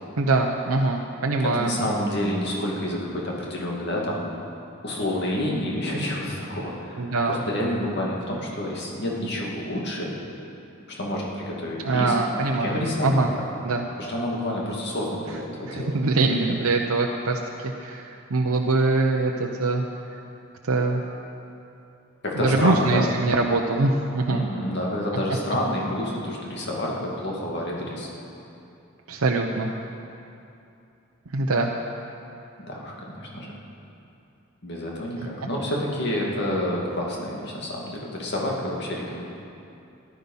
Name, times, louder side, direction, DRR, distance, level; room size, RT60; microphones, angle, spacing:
voice 1, 0.2-1.7 7.0-7.4 11.8-13.3 13.6-13.8 15.6-17.4 17.8-19.8 20.6-21.0 22.3-24.4 29.1-29.7 31.3-31.7, right 3 dB, 90° right, 1 dB, 0.8 m, -23 dB
voice 2, 1.6-4.2 4.8-7.0 7.3-10.1 11.0-12.2 12.6-13.2 14.0-15.9 22.2-23.0 24.3-28.1 32.7-33.5 34.6-39.2, left 1 dB, 50° left, -3 dB, 2.3 m, -28 dB
14.5 x 11.0 x 5.5 m, 2.7 s
head